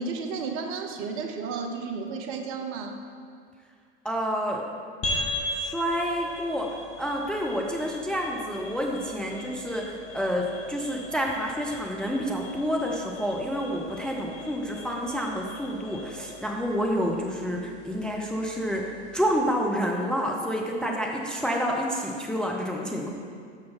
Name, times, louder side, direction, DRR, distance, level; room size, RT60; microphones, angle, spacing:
voice 1, 0.0-3.0, right 4 dB, 40° right, 5 dB, 0.7 m, -32 dB
voice 2, 4.0-4.6 5.6-23.1, equal, 5° left, 0 dB, 0.5 m, -29 dB
sound 1, 5.0-19.6, left 1 dB, 45° left, 1.7 m, -39 dB
6.2 x 5.8 x 4.4 m, 2.2 s
figure-of-eight pair, 75°, 32 cm